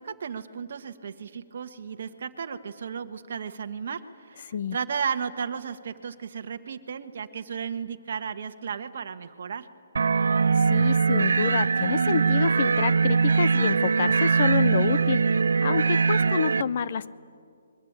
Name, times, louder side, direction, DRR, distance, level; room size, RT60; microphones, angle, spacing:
voice 1, 0.0-9.7, right 6 dB, 45° right, 7 dB, 1.3 m, -34 dB
sound 1, 10.0-16.6, right 5 dB, 75° right, 0.6 m, -22 dB
voice 2, 10.5-17.2, left 7 dB, 35° left, 15 dB, 0.7 m, -28 dB
29.0 x 22.0 x 8.8 m, 2.3 s
hypercardioid pair, 180°, 0 cm